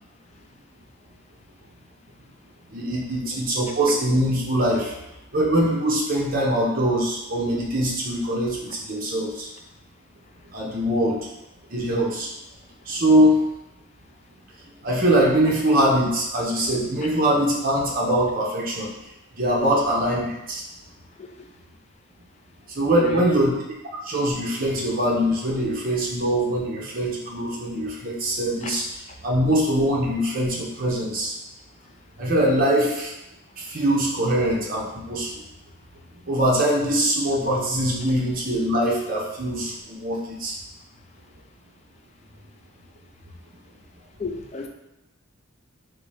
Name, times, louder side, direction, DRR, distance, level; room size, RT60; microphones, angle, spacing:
voice 1, 2.7-5.0 5.3-9.5 10.5-11.3 11.7-12.3 12.8-13.4 14.8-18.9 19.4-20.6 22.7-23.5 24.0-28.9 29.2-31.3 32.2-33.1 33.6-35.4 36.2-40.6, right 1 dB, 40° right, -3 dB, 0.8 m, -22 dB
voice 2, 44.2-44.7, left 4 dB, 30° left, 2 dB, 0.4 m, -32 dB
3.8 x 2.7 x 3.4 m, 0.89 s
head